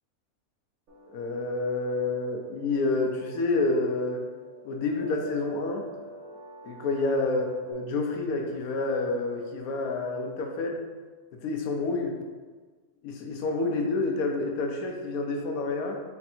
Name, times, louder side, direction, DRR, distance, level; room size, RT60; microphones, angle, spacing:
sound 1, 0.9-7.7, right 1 dB, 80° right, 1.2 m, -47 dB
voice 1, 1.1-4.2 4.6-5.9 6.6-10.8 11.3-12.2 13.0-16.0, left 3 dB, 85° left, 3 dB, 1.1 m, -28 dB
4.5 x 2.5 x 4.2 m, 1.4 s
omnidirectional pair, 1.5 m